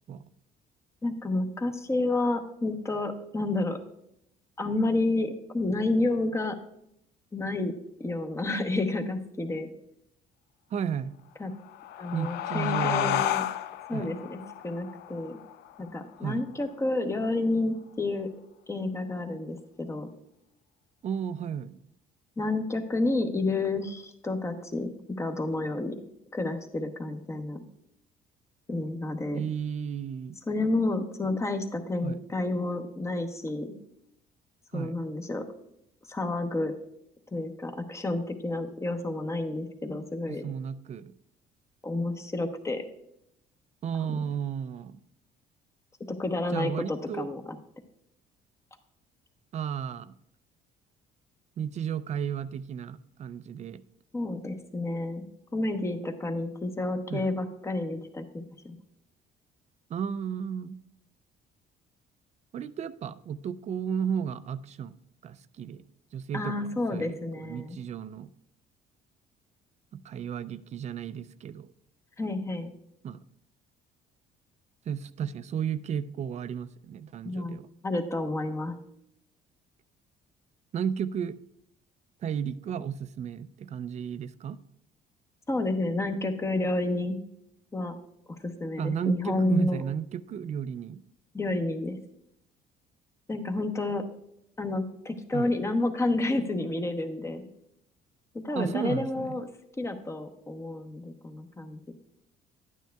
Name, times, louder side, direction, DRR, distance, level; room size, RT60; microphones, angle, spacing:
voice 1, 1.0-3.8 4.6-6.6 7.3-7.7 8.0-9.7 11.4-11.5 12.0-13.4 13.9-15.4 15.8-18.3 18.7-20.1 22.4-26.0 26.3-27.6 28.7-29.4 30.5-33.7 34.7-35.4 36.0-36.7 37.3-40.4 41.8-42.8 44.0-44.1 46.1-47.6 54.1-55.2 55.5-58.7 66.3-67.8 72.2-72.7 77.2-77.6 77.8-78.7 85.5-87.2 87.7-88.0 88.3-89.8 91.3-92.0 93.3-94.0 94.6-97.4 98.4-99.5 99.8-101.9, left 2 dB, 15° left, 6 dB, 0.9 m, -30 dB
voice 2, 10.7-11.2 12.1-13.3 13.9-14.1 16.2-16.4 21.0-21.8 29.3-30.4 32.0-32.2 34.7-35.0 40.3-41.1 43.8-45.0 46.5-47.3 49.5-50.1 51.6-53.8 57.1-57.2 59.9-60.8 62.5-64.9 65.2-65.8 66.1-68.3 69.9-71.7 73.0-73.2 74.9-77.7 80.7-81.4 82.2-84.6 88.8-91.0 95.3-95.5 98.5-99.4, right 8 dB, 45° right, 15 dB, 0.4 m, -33 dB
sound 1, 11.5-16.7, left 12 dB, 75° left, 0.4 m, -32 dB
11.5 x 9.1 x 2.3 m, 0.79 s
cardioid pair, 110°, 17 cm